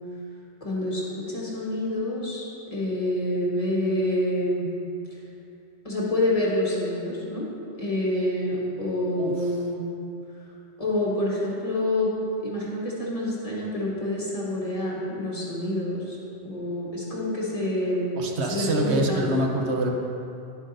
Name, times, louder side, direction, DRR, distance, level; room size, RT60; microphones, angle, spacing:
voice 1, 0.6-4.7 5.8-7.5 7.8-9.8 10.8-12.1 12.4-16.2 16.4-18.2 18.5-19.4, left 1 dB, 35° left, -6 dB, 1.5 m, -27 dB
voice 2, 9.2-9.5 18.2-19.9, right 1 dB, 80° right, 1 dB, 1.1 m, -26 dB
11.0 x 7.4 x 2.6 m, 2.6 s
omnidirectional pair, 1.1 m